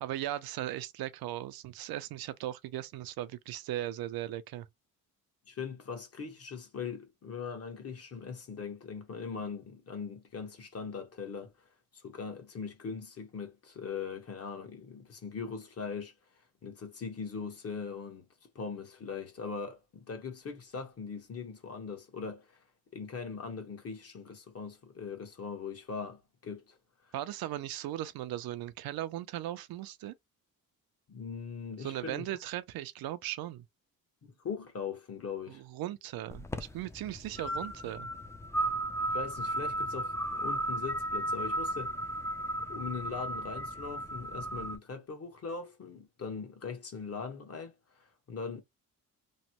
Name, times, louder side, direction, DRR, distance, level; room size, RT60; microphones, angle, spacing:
voice 1, 0.0-4.7 27.1-30.1 31.8-33.6 35.5-36.5 36.7-38.1, right 13 dB, 80° right, 0.5 m, -38 dB
voice 2, 5.5-11.5 11.9-16.1 16.6-18.2 18.5-22.6 22.9-26.8 31.1-32.3 34.4-35.6 39.1-41.9 42.7-48.6, left 5 dB, 40° left, 1.1 m, -40 dB
sound 1, 36.3-44.8, right 1 dB, 10° left, 0.4 m, -35 dB
3.1 x 2.1 x 2.9 m
cardioid pair, 90°, 36 cm